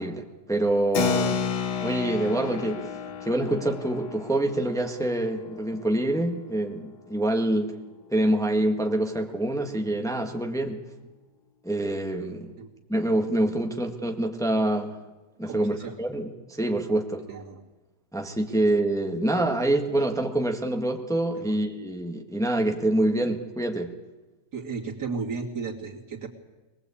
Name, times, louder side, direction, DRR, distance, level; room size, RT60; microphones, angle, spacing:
voice 1, 0.0-1.4 1.8-2.9 3.2-7.8 8.1-10.8 11.6-12.5 12.9-15.0 15.4-17.2 18.1-23.9, right 1 dB, ahead, 3 dB, 1.5 m, -26 dB
Keyboard (musical), 0.9-7.0, left 6 dB, 80° left, 1.8 m, -32 dB
voice 2, 15.4-16.0 17.3-17.6 21.3-21.6 24.5-26.3, right 5 dB, 70° right, -1 dB, 3.1 m, -34 dB
21.5 x 21.0 x 8.6 m, 1.2 s
omnidirectional pair, 1.8 m